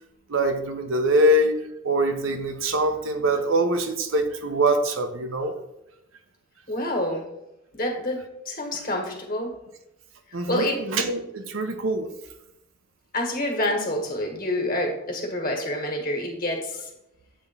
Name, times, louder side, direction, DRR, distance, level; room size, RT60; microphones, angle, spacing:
voice 1, 0.3-1.5 1.8-5.5 10.3-12.1, right 1 dB, 80° right, 6 dB, 0.8 m, -23 dB
voice 2, 6.7-7.3 7.7-9.5 10.5-10.8 13.1-16.9, left 1 dB, 45° left, 1 dB, 1.5 m, -27 dB
7.8 x 3.5 x 5.4 m, 0.88 s
head